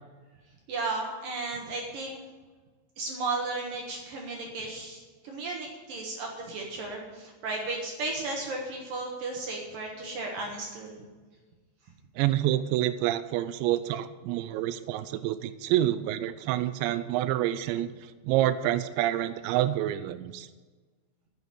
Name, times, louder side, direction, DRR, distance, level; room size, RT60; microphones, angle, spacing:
voice 1, 0.7-2.2 3.0-11.0, right 3 dB, 65° right, 0 dB, 2.4 m, -34 dB
voice 2, 12.2-17.9 18.2-20.5, right 13 dB, 85° right, 12 dB, 2.6 m, -27 dB
9.8 x 8.1 x 9.3 m, 1.4 s
omnidirectional pair, 5.7 m